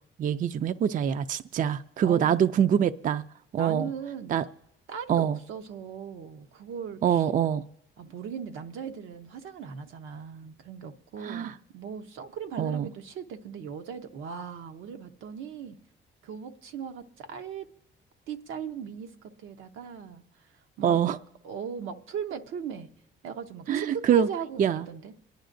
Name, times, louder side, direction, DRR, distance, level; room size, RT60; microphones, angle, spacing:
voice 1, 0.2-3.2 3.5-3.9 4.3-4.4 5.1-5.4 7.0-7.6 11.2-11.5 12.6-12.8 20.8-21.2 23.7-24.3 24.6-24.8, right 9 dB, 45° right, 0.4 m, -24 dB
voice 2, 2.0-2.4 3.6-4.4 4.9-7.3 8.0-15.8 16.2-17.7 18.3-20.5 20.8-21.0 21.4-22.9 23.2-25.1, right 7 dB, 85° right, 0.7 m, -38 dB
27.5 x 10.5 x 2.5 m
cardioid pair, 90°, 20 cm